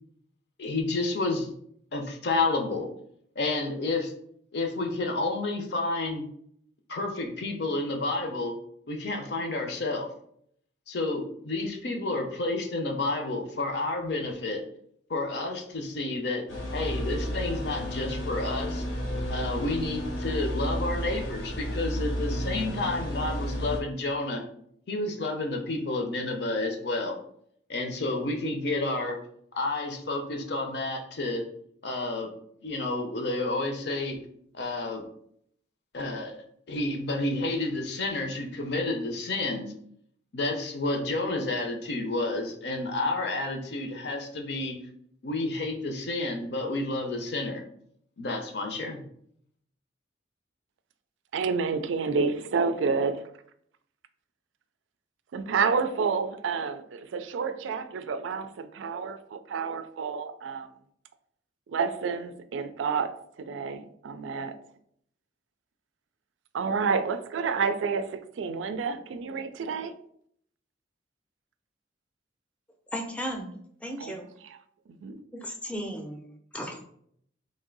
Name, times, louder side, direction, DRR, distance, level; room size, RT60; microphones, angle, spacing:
voice 1, 0.6-1.5 1.9-2.9 3.4-4.1 4.5-6.2 6.9-8.6 8.9-10.1 10.9-14.6 15.1-16.4 16.7-18.8 19.3-24.4 24.9-27.2 27.7-29.2 29.6-31.5 31.8-32.3 32.6-34.2 34.5-35.0 35.9-39.7 40.3-44.8 45.2-47.6 48.2-49.0, left 2 dB, 60° left, 0.6 m, -30 dB
sound 1, 16.5-23.8, equal, 85° left, 1.0 m, -32 dB
voice 2, 51.3-53.3 55.3-60.7 61.7-64.6 66.5-69.9 74.0-74.1 74.4-74.6 75.0-75.2, right 5 dB, 85° right, 0.4 m, -29 dB
voice 3, 72.9-73.5 73.8-74.3 75.3-76.2 76.5-76.8, equal, 5° left, 0.5 m, -35 dB
3.3 x 2.6 x 3.8 m
head